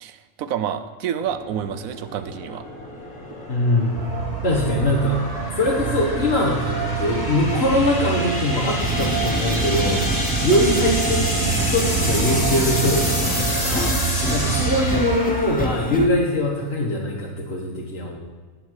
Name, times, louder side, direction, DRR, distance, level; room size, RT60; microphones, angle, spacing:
voice 1, 0.0-2.6, right 9 dB, 85° right, 11 dB, 1.1 m, -28 dB
sound 1, 1.2-16.6, left 1 dB, 30° left, 2.2 m, -29 dB
voice 2, 3.5-4.0 4.4-5.2 5.6-13.1 13.5-13.9 14.3-18.2, left 1 dB, 50° left, -5 dB, 1.8 m, -22 dB
sound 2, 4.0-15.2, right 8 dB, 55° right, 0.6 m, -27 dB
sound 3, 8.8-16.1, left 1 dB, 10° left, 0.5 m, -27 dB
18.5 x 7.4 x 4.8 m, 1.4 s
omnidirectional pair, 1.4 m